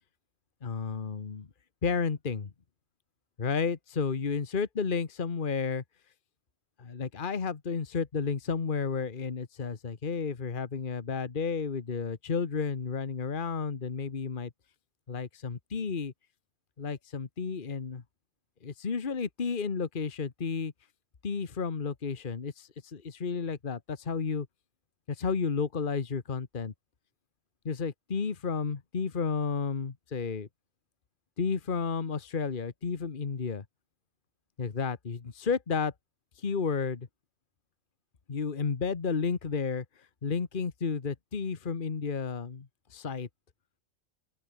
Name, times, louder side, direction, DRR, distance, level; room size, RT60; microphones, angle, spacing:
voice 1, 0.6-1.5 1.8-2.5 3.4-5.8 6.8-14.5 15.1-16.1 16.8-18.0 18.6-20.7 21.2-24.5 25.1-26.7 27.6-30.5 31.4-33.6 34.6-35.9 36.4-37.1 38.3-39.8 40.2-43.3, left 5 dB, 45° left, 1.5 m, -32 dB
open air
omnidirectional pair, 1.2 m